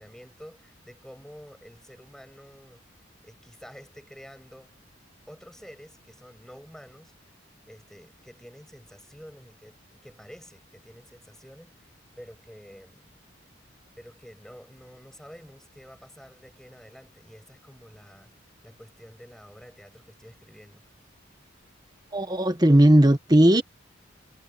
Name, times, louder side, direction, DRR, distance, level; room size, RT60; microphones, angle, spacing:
voice 1, 0.0-4.7 5.3-7.3 7.7-9.8 10.0-13.1 14.0-18.3 18.6-20.8, equal, ahead, 7.3 m, -49 dB
voice 2, 22.1-23.6, right 1 dB, 20° right, 1.2 m, -17 dB
head